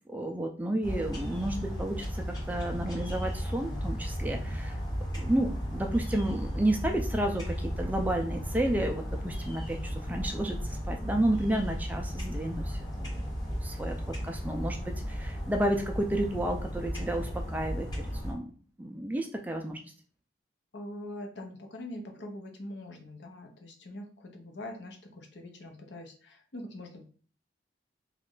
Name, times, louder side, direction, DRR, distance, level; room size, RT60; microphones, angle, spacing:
voice 1, 0.1-4.8 5.1-13.3 13.6-14.0 14.2-17.9 18.2-18.5 18.8-19.8, right 1 dB, 10° right, 3 dB, 0.3 m, -31 dB
sound 1, 0.8-18.3, equal, 20° left, 0.8 m, -35 dB
voice 2, 20.7-27.0, left 1 dB, 70° left, 3 dB, 0.7 m, -43 dB
3.1 x 2.4 x 3.6 m, 0.43 s
head